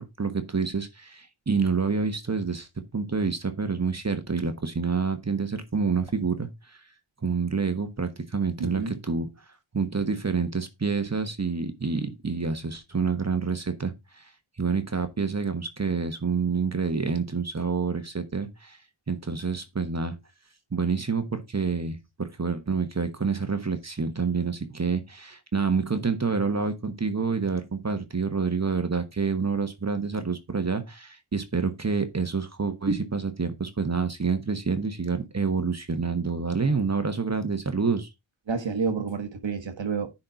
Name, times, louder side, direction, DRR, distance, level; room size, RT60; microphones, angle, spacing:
voice 1, 0.0-6.8 7.2-9.3 9.7-14.3 14.6-18.8 19.1-20.2 20.7-38.1, right 4 dB, 30° right, 1.3 m, -28 dB
voice 2, 8.6-9.0 38.5-40.1, right 5 dB, 60° right, 1.5 m, -29 dB
10.5 x 4.3 x 4.0 m
wide cardioid pair, 75°, 50 cm